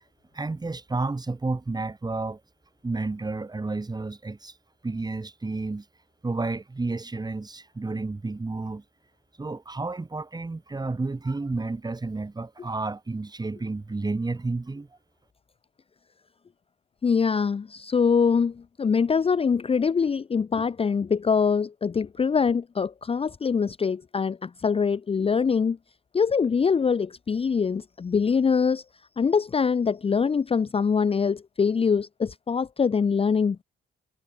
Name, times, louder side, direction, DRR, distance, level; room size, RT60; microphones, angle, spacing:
voice 1, 0.3-2.4 2.8-4.5 4.8-5.8 6.2-8.8 9.4-14.9, right 3 dB, 20° right, 3.2 m, -31 dB
voice 2, 17.0-25.8 26.1-28.8 29.2-33.6, left 6 dB, 30° left, 0.7 m, -24 dB
cardioid pair, 90°, 20 cm